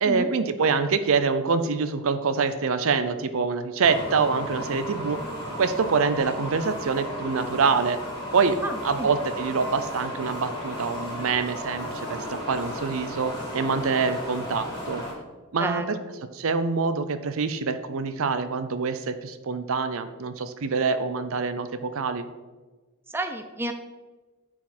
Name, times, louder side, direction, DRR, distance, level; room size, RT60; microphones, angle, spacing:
voice 1, 0.0-5.2 5.6-8.0 8.3-8.6 8.8-15.0 15.5-15.8 16.3-22.3, right 5 dB, 65° right, 11 dB, 0.5 m, -25 dB
sound 1, 3.8-15.1, equal, 20° left, 2.3 m, -34 dB
voice 2, 8.6-9.1 15.6-16.0 23.1-23.7, right 1 dB, 10° right, 6 dB, 0.5 m, -30 dB
9.4 x 4.9 x 4.2 m, 1.3 s
head